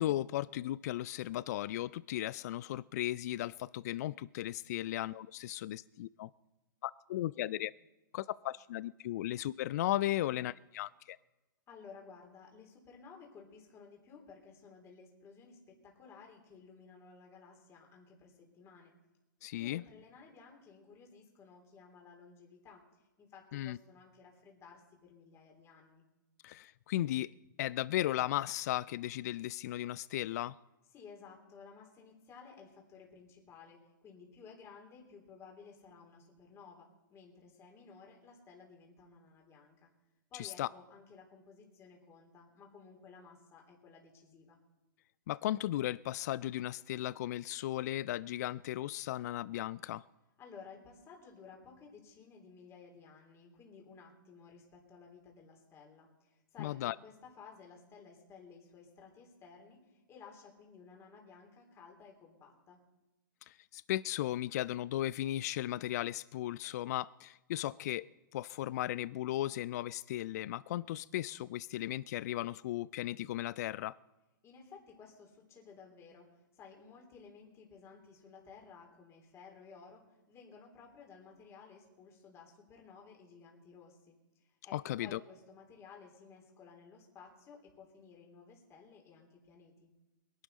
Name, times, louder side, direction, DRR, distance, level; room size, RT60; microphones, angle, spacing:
voice 1, 0.0-6.3 6.8-7.7 8.1-11.2 19.4-19.8 23.5-23.8 26.4-27.3 27.6-30.6 40.3-40.7 45.3-50.0 56.6-57.0 63.5-73.9 84.7-85.2, left 14 dB, 50° left, 20 dB, 0.4 m, -36 dB
voice 2, 11.7-18.9 19.6-22.8 23.2-26.0 30.9-39.9 40.3-44.6 50.4-62.8 74.4-89.9, left 5 dB, 25° left, 0 dB, 3.5 m, -56 dB
22.0 x 11.5 x 4.1 m, 1.1 s
hypercardioid pair, 120°, 11 cm